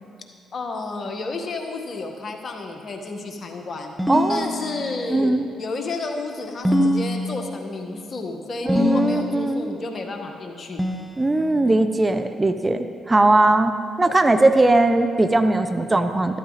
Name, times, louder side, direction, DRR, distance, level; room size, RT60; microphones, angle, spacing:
voice 1, 0.5-4.0 4.3-5.3 5.6-10.8, left 3 dB, 50° left, 3 dB, 1.6 m, -31 dB
sound 1, 4.0-5.2 6.6-7.8 8.7-9.6 10.8-11.8, left 1 dB, ahead, 1.1 m, -24 dB
voice 2, 4.1-4.5 5.1-5.5 8.6-9.8 11.2-13.7 14.0-16.4, right 2 dB, 25° right, 9 dB, 0.7 m, -19 dB
13.0 x 13.0 x 4.1 m, 2.2 s
supercardioid pair, 55°, 0 cm